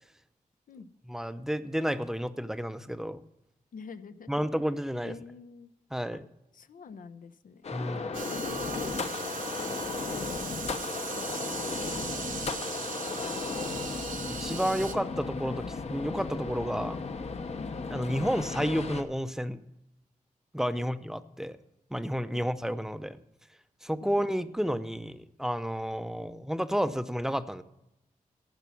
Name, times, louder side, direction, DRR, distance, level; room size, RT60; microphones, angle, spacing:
voice 1, 1.1-3.2 4.3-5.2 5.9-6.3 7.7-8.1 14.3-17.0 17.9-19.6 20.5-21.6 21.9-23.2 23.8-27.6, equal, 5° right, 12 dB, 0.5 m, -31 dB
voice 2, 3.7-4.3 5.0-5.7 6.5-11.9 12.2-12.7 13.1-14.0 17.5-17.7 20.7-20.9 22.3-22.4 24.0-24.1, left 5 dB, 75° left, 12 dB, 0.7 m, -47 dB
sound 1, 7.6-19.0, left 4 dB, 50° left, 0.8 m, -35 dB
sound 2, 8.1-14.9, right 5 dB, 70° right, 1.1 m, -38 dB
13.5 x 6.0 x 7.0 m, 0.89 s
wide cardioid pair, 110°, 14 cm